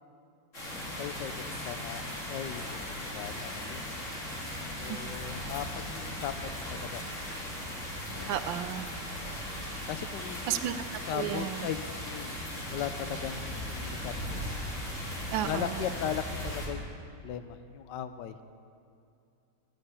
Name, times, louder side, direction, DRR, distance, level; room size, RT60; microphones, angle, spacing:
Rain in garden, 0.5-16.7, equal, 40° left, 3.5 m, -38 dB
voice 1, 1.0-3.8 4.8-7.5 7.8-8.3 9.1-9.4 9.9-10.6 11.1-14.5 15.4-16.9 17.2-18.4, left 9 dB, 70° left, 11 dB, 1.3 m, -38 dB
voice 2, 8.3-8.9 10.5-10.7 11.1-11.7 15.3-15.8, right 11 dB, 90° right, 11 dB, 1.4 m, -32 dB
13.0 x 9.9 x 9.8 m, 2.5 s
omnidirectional pair, 2.1 m